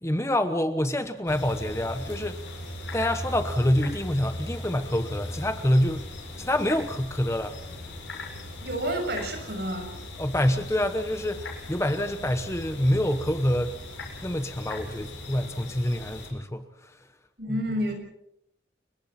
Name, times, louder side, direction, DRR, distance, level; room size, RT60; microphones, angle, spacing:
voice 1, 0.0-2.4 2.9-6.0 6.4-7.6 10.2-13.7 14.2-17.0 17.5-17.6, left 1 dB, 15° left, 8 dB, 1.0 m, -26 dB
sound 1, 1.3-16.3, left 1 dB, 80° left, 8.0 m, -39 dB
voice 2, 8.6-9.9 17.4-17.9, equal, 60° right, 4 dB, 7.0 m, -29 dB
30.0 x 23.5 x 4.4 m, 0.79 s
head